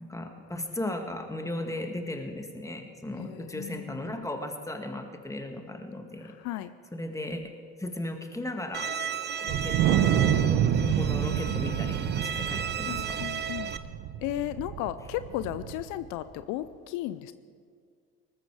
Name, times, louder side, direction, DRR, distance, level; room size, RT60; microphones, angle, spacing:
voice 1, 0.0-6.3 6.9-7.4 7.8-8.9 9.4-13.2, left 1 dB, 10° left, 4 dB, 1.9 m, -36 dB
voice 2, 3.2-4.1 6.4-6.7 12.9-13.7 14.2-17.3, left 14 dB, 70° left, 13 dB, 0.6 m, -35 dB
Bowed string instrument, 8.7-13.8, right 7 dB, 35° right, 0.8 m, -34 dB
Wind, 9.5-16.0, right 9 dB, 70° right, 1.2 m, -27 dB
19.0 x 13.5 x 4.8 m, 2.1 s
supercardioid pair, 75°, 31 cm